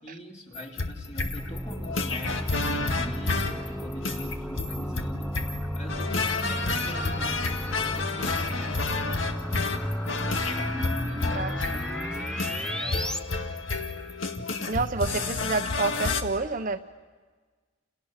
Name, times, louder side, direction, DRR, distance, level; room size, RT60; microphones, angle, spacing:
voice 1, 0.0-5.3 5.7-9.8 10.5-13.0, equal, 35° left, -1 dB, 4.3 m, -43 dB
sound 1, 0.5-16.2, left 3 dB, 75° left, 1.9 m, -30 dB
sound 2, 1.2-13.2, equal, 5° left, 0.8 m, -33 dB
voice 2, 14.7-16.8, right 3 dB, 40° right, 7 dB, 1.0 m, -28 dB
30.0 x 30.0 x 6.7 m, 1.4 s
head